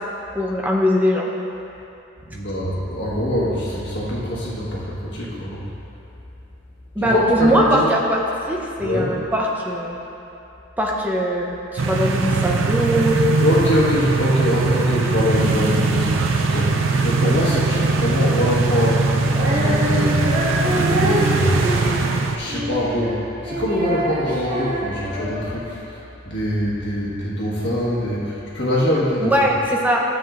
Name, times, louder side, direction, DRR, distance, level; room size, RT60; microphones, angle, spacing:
voice 1, 0.3-1.3 7.0-8.2 8.5-10.0 10.8-13.2 29.2-30.0, equal, 10° right, -2 dB, 0.7 m, -20 dB
voice 2, 2.3-5.6 7.0-7.9 8.8-9.2 13.1-20.3 20.6-21.8 22.3-29.5, left 1 dB, 60° left, -7 dB, 1.6 m, -23 dB
sound 1, 11.8-22.4, right 4 dB, 85° right, 0.5 m, -20 dB
Female singing, 19.3-25.7, equal, 40° right, 1.8 m, -26 dB
12.0 x 7.4 x 2.5 m, 2.8 s
head